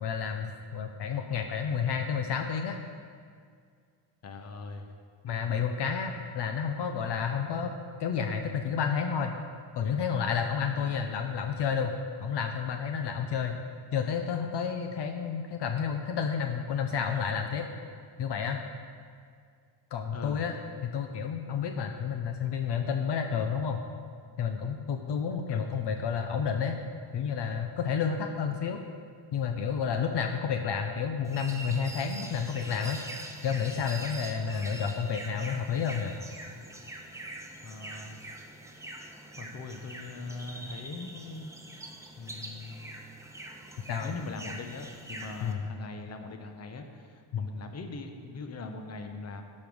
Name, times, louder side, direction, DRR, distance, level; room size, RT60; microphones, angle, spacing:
voice 1, 0.0-2.8 5.2-7.7 8.0-9.4 9.8-13.6 13.9-17.7 18.2-18.6 19.9-20.6 20.8-23.8 24.4-26.8 27.1-28.8 29.3-33.0 33.4-36.2 43.9-44.1 45.4-45.7 47.3-47.5, left 6 dB, 55° left, 5 dB, 0.8 m, -30 dB
voice 2, 1.1-1.6 4.2-5.0 10.7-11.0 20.1-20.4 25.5-25.9 34.5-34.9 37.6-38.2 39.4-41.5 42.2-42.9 44.0-49.4, left 3 dB, 30° left, 6 dB, 0.9 m, -41 dB
sound 1, 31.2-45.5, right 2 dB, 5° right, 0.8 m, -44 dB
12.0 x 5.5 x 6.2 m, 2.1 s
cardioid pair, 135°, 49 cm